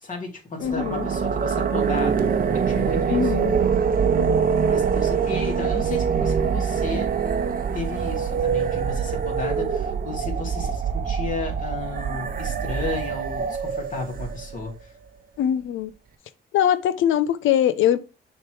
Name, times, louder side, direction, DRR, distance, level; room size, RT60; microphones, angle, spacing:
voice 1, 0.0-2.3 2.7-3.3 4.6-7.1 7.7-14.8, left 3 dB, 40° left, 2.6 m, -33 dB
voice 2, 0.6-1.1 3.1-3.5 15.4-15.9 16.5-18.0, left 10 dB, 80° left, 0.6 m, -22 dB
sound 1, 0.6-14.7, right 6 dB, 45° right, 0.8 m, -24 dB
6.6 x 3.2 x 4.7 m
cardioid pair, 90°, 20 cm